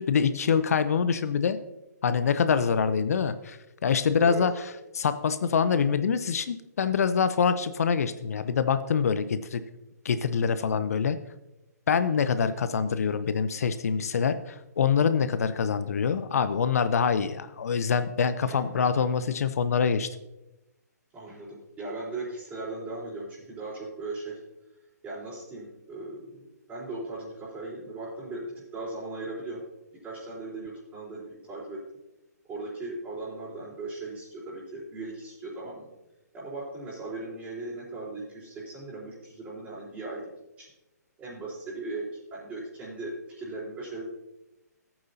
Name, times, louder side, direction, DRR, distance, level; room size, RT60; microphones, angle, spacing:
voice 1, 0.0-1.6 2.0-4.5 4.9-9.6 10.0-11.2 11.9-20.1, left 6 dB, 60° left, 12 dB, 0.6 m, -25 dB
voice 2, 18.4-18.8 21.1-24.4 25.0-26.4 26.7-28.5 28.7-29.6 30.0-31.8 32.5-35.9 36.3-40.2 40.6-40.7 41.2-42.0 42.3-44.0, right 2 dB, 15° right, -8 dB, 3.9 m, -38 dB
14.5 x 8.8 x 2.8 m, 0.96 s
figure-of-eight pair, 135°, 9 cm